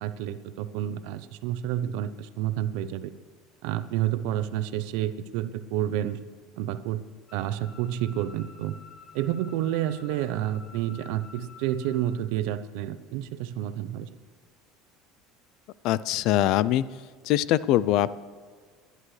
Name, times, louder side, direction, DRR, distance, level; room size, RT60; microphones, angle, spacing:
voice 1, 0.0-3.1 3.6-6.2 6.6-7.0 7.3-8.7 9.1-14.1, right 12 dB, 75° right, 12 dB, 0.7 m, -29 dB
sound 1, 7.3-12.1, left 5 dB, 25° left, 5.3 m, -50 dB
voice 2, 15.8-16.8 17.2-18.1, left 13 dB, 60° left, 18 dB, 0.4 m, -23 dB
28.0 x 10.5 x 3.3 m, 1.5 s
supercardioid pair, 115°, 0 cm